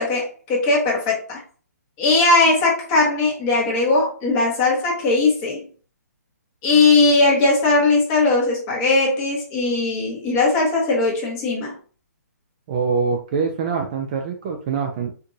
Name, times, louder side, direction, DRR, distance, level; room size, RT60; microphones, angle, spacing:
voice 1, 0.0-1.4 2.0-5.7 6.6-11.7, left 3 dB, 20° left, -3 dB, 1.1 m, -19 dB
voice 2, 12.7-15.1, right 5 dB, 25° right, 3 dB, 0.3 m, -24 dB
4.4 x 2.5 x 2.5 m, 0.42 s
hypercardioid pair, 165°, 9 cm